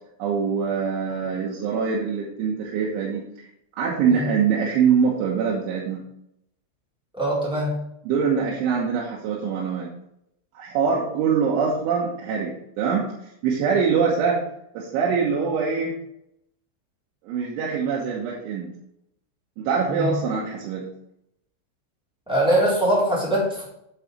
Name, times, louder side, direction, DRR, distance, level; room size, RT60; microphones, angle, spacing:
voice 1, 0.2-3.3 3.8-6.1 8.1-9.9 10.6-14.4 14.8-15.9 17.2-18.7 19.6-20.9, right 6 dB, 80° right, -3 dB, 3.5 m, -24 dB
voice 2, 7.2-7.8 19.9-20.1 22.3-23.7, right 1 dB, ahead, -7 dB, 2.6 m, -22 dB
9.6 x 7.3 x 3.3 m, 0.77 s
omnidirectional pair, 5.7 m